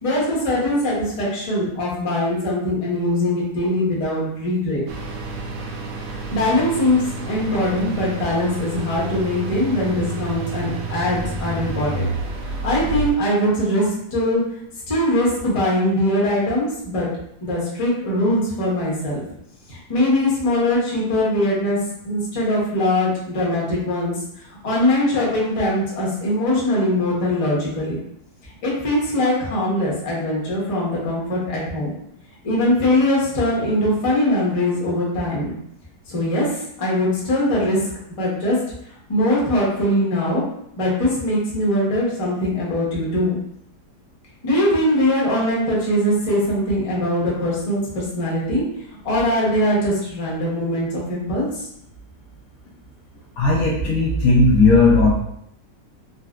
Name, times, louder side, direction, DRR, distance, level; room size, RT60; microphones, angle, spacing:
voice 1, 0.0-4.8 6.3-12.1 12.4-14.4 14.9-17.1 17.4-19.2 19.7-21.8 22.0-24.1 24.6-28.0 28.6-31.9 32.4-35.5 36.1-37.8 38.2-38.6 39.1-40.4 40.8-43.4 44.4-48.7 49.0-51.7, left 1 dB, 30° left, -5 dB, 0.6 m, -21 dB
sound 1, 4.9-13.1, right 2 dB, 70° right, 0.8 m, -29 dB
voice 2, 53.4-55.1, left 3 dB, 70° left, -4 dB, 0.9 m, -15 dB
3.9 x 2.1 x 2.3 m, 0.73 s
omnidirectional pair, 1.8 m